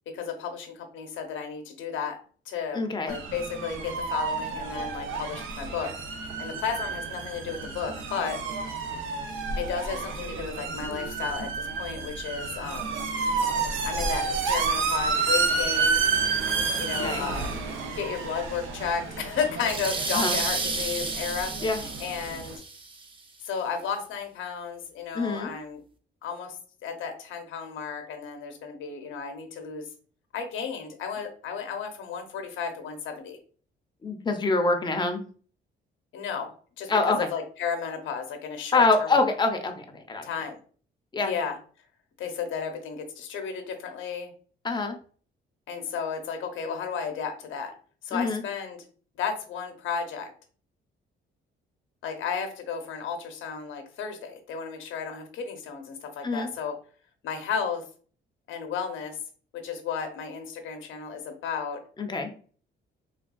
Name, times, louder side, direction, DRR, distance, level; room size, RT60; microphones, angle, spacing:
voice 1, 0.1-2.2 2.5-5.9 6.4-8.4 9.6-13.0 13.8-16.0 16.8-17.6 17.9-22.5 23.4-25.8 26.2-26.6 26.8-29.8 30.3-33.4 36.1-36.5 36.8-39.2 40.2-40.6 41.2-41.6 42.2-44.3 45.7-47.7 48.0-48.8 49.2-50.3 52.0-56.7 57.2-57.8 58.5-59.2 59.5-61.8, left 6 dB, 75° left, 5 dB, 0.7 m, -33 dB
voice 2, 2.7-3.1 17.0-17.3 20.1-20.4 21.6-21.8 25.1-25.5 34.0-35.2 36.9-37.3 38.7-40.3 41.1-41.3 44.6-45.0 48.1-48.4 56.2-56.5 62.0-62.3, left 3 dB, 20° left, 5 dB, 0.5 m, -25 dB
sound 1, 3.1-22.6, right 4 dB, 80° right, 0.5 m, -30 dB
sound 2, 19.6-23.0, right 3 dB, 25° right, 0.5 m, -31 dB
3.4 x 2.3 x 2.2 m, 0.42 s
cardioid pair, 90°, 20 cm